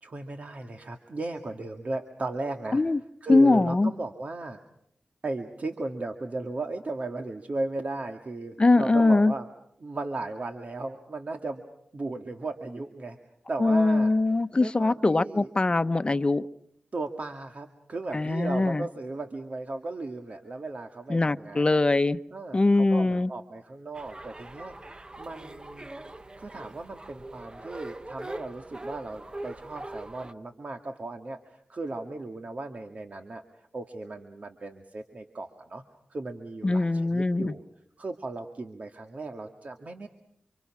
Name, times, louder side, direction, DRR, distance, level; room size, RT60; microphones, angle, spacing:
voice 1, 0.0-2.8 3.2-4.6 5.2-9.5 9.8-11.6 11.9-13.2 13.5-14.1 14.6-15.5 16.9-21.8 22.3-25.9 26.4-33.4 33.7-35.8 36.1-37.6 38.0-40.1, right 2 dB, 55° right, 2.1 m, -36 dB
voice 2, 3.3-3.9 8.6-9.3 13.6-16.5 18.1-18.9 21.1-22.2 22.5-23.3 36.6-37.5, left 2 dB, 35° left, 1.0 m, -22 dB
sound 1, 23.9-30.3, right 1 dB, 30° right, 1.1 m, -42 dB
29.5 x 26.0 x 6.1 m
cardioid pair, 50°, 3 cm